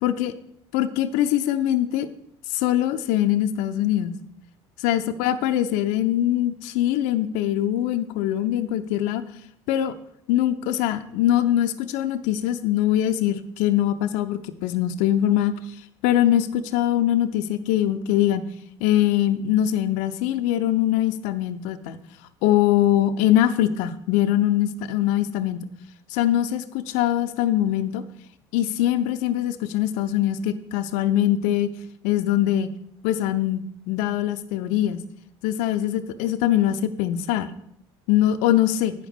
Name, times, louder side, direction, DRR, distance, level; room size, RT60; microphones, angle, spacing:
voice 1, 0.0-0.3 0.7-2.1 2.5-4.2 4.8-9.2 9.7-9.9 10.3-15.5 16.0-18.5 18.8-22.0 22.4-25.6 26.1-28.0 28.5-31.7 32.0-32.7 33.0-35.0 35.4-37.5 38.1-38.9, left 12 dB, 75° left, 9 dB, 0.5 m, -22 dB
8.4 x 6.6 x 5.2 m, 0.72 s
hypercardioid pair, 70°, 13 cm